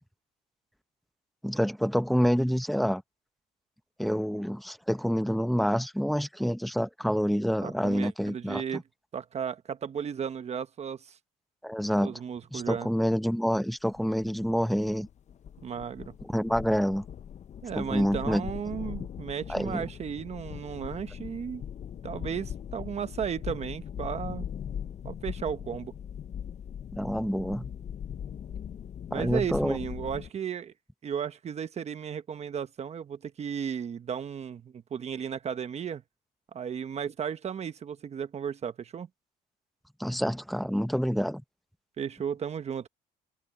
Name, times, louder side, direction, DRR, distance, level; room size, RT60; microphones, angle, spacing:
voice 1, 1.4-3.0 4.0-8.8 11.6-12.1 12.5-15.1 16.2-17.0 17.8-18.4 19.5-19.9 26.9-27.7 29.1-29.8 40.0-41.4, equal, ahead, 0.7 m, -27 dB
voice 2, 7.6-8.8 9.1-11.2 12.0-12.9 15.6-16.1 17.6-21.6 22.0-24.5 25.0-25.9 29.1-30.7 31.0-36.0 36.5-39.1 42.0-42.9, right 7 dB, 40° right, 1.1 m, -34 dB
sound 1, 13.9-30.3, left 9 dB, 45° left, 0.8 m, -40 dB
cardioid pair, 110°, 17 cm